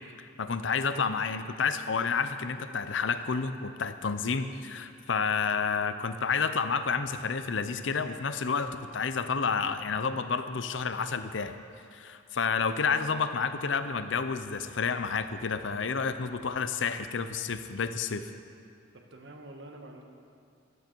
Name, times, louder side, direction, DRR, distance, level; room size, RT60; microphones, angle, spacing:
voice 1, 0.2-11.5 11.9-18.3, left 5 dB, 70° left, 11 dB, 0.6 m, -30 dB
voice 2, 18.9-20.0, right 1 dB, 65° right, 2 dB, 1.4 m, -47 dB
14.5 x 12.0 x 4.6 m, 2.4 s
head